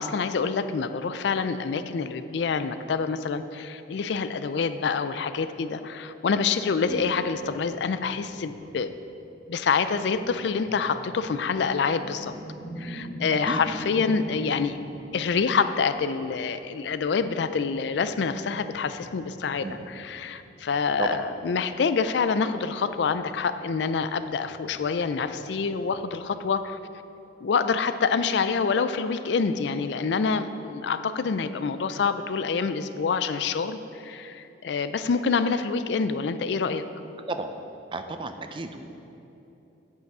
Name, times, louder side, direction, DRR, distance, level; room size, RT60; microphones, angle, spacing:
voice 1, 0.0-8.9 9.5-12.3 12.8-14.8 15.1-26.8 27.4-36.9, left 5 dB, 65° left, 11 dB, 0.4 m, -26 dB
sound 1, 7.3-15.8 16.1-16.3 17.2-22.6 22.9-23.0 23.4-23.5 23.8-26.6, equal, 5° left, 2.0 m, -44 dB
voice 2, 37.2-37.5 37.9-38.8, right 3 dB, 25° right, 7 dB, 0.5 m, -33 dB
9.1 x 5.6 x 6.0 m, 3.0 s
head